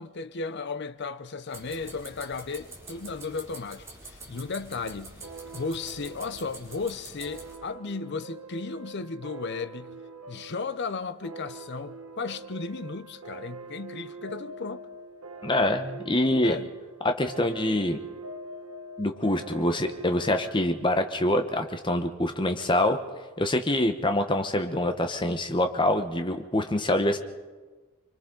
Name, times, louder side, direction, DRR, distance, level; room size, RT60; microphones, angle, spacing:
voice 1, 0.0-5.2 5.5-10.0 10.3-14.9 16.4-16.7, left 4 dB, 50° left, 0.6 m, -35 dB
sound 1, 1.5-7.6, right 2 dB, 10° right, 2.9 m, -46 dB
sound 2, 5.2-22.3, right 3 dB, 75° right, 1.0 m, -44 dB
voice 2, 15.4-16.6 17.0-18.0 19.0-23.0 23.4-27.2, left 1 dB, 20° left, 1.0 m, -25 dB
29.0 x 23.5 x 3.9 m
head